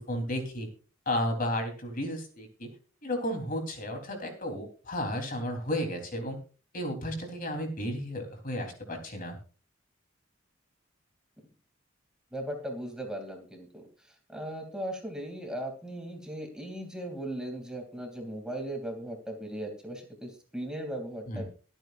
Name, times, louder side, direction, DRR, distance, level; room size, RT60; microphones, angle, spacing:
voice 1, 0.1-0.7 1.1-2.7 3.0-6.4 6.7-9.4 21.3-21.4, left 1 dB, 45° left, 4 dB, 3.5 m, -33 dB
voice 2, 12.3-21.4, right 1 dB, 5° right, 2 dB, 2.7 m, -38 dB
24.0 x 9.0 x 2.5 m, 0.37 s
head